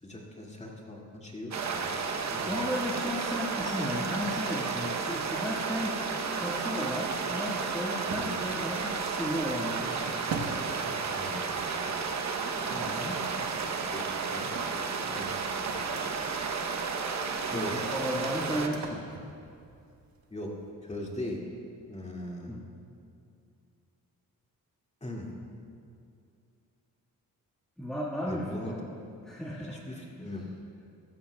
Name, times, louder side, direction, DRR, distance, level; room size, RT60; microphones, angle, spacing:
voice 1, 0.0-1.9 2.3-2.6 11.1-11.9 13.9-14.8 15.1-15.9 17.5-17.9 20.3-20.5 20.8-21.4 21.9-22.5 25.0-25.3 28.3-28.7 29.9-30.4, left 1 dB, 20° left, -2 dB, 2.3 m, -40 dB
sound 1, 1.5-18.7, right 5 dB, 50° right, 1.0 m, -32 dB
voice 2, 2.4-6.0 6.3-10.1 12.7-13.2 15.0-15.3 17.5-19.0 22.5-22.6 27.8-28.8 29.2-29.8 30.2-30.4, equal, ahead, -7 dB, 1.7 m, -34 dB
sound 2, 8.1-20.7, right 4 dB, 90° right, 1.0 m, -45 dB
15.5 x 13.0 x 2.3 m, 2.5 s
cardioid pair, 75°, 35 cm